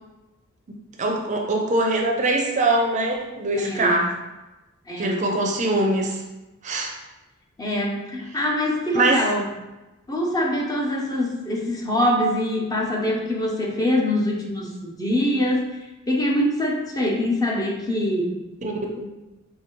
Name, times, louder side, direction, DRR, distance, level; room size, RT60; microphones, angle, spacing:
voice 1, 0.7-4.1 5.0-6.2 6.6-7.0 8.9-9.2 18.6-18.7 19.0-19.1, right 2 dB, 35° right, 1 dB, 0.5 m, -23 dB
voice 2, 3.5-4.0 4.9-5.2 7.6-9.5 10.1-15.7 16.1-18.3, left 1 dB, 20° left, 0 dB, 0.5 m, -24 dB
5.0 x 2.7 x 3.0 m, 1.0 s
head